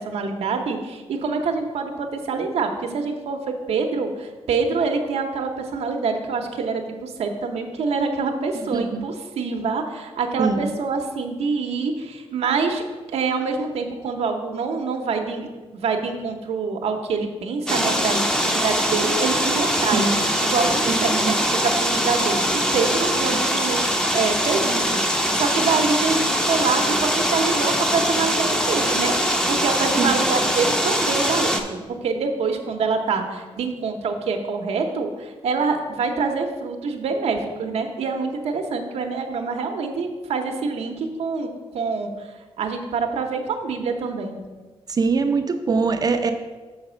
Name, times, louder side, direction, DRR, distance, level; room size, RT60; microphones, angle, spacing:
voice 1, 0.0-12.8 13.1-20.1 20.4-41.5 41.7-44.4, right 4 dB, 85° right, 3 dB, 0.8 m, -26 dB
voice 2, 8.7-9.1 10.4-10.7 19.9-20.2 20.8-21.4 23.3-23.4 30.0-30.2 44.9-46.3, right 4 dB, 40° right, 7 dB, 0.5 m, -23 dB
sound 1, 17.7-31.6, equal, 5° left, 0.6 m, -22 dB
6.4 x 4.1 x 6.1 m, 1.3 s
wide cardioid pair, 120°, 11 cm